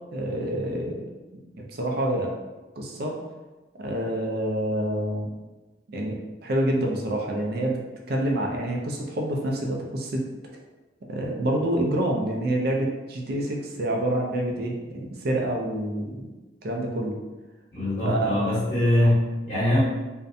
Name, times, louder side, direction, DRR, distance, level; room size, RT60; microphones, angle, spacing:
voice 1, 0.1-1.0 1.3-2.3 2.8-3.2 3.7-5.3 5.9-6.2 6.4-7.8 8.1-10.2 10.5-10.6 11.1-16.2 16.6-17.2 18.0-18.4, right 1 dB, 50° right, 0 dB, 0.4 m, -27 dB
voice 2, 17.7-19.8, left 1 dB, 30° left, -13 dB, 0.9 m, -22 dB
2.5 x 2.1 x 2.5 m, 1.2 s
head